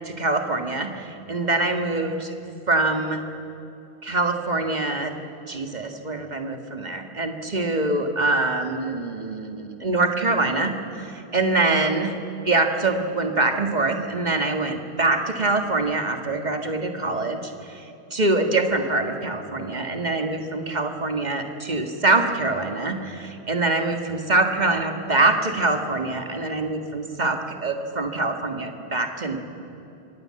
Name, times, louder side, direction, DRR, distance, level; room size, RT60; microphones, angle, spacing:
voice 1, 0.1-2.3 2.7-3.2 4.0-5.1 5.5-12.1 12.5-29.4, right 2 dB, 40° right, 5 dB, 2.0 m, -24 dB
25.5 x 19.0 x 7.7 m, 2.8 s
omnidirectional pair, 1.1 m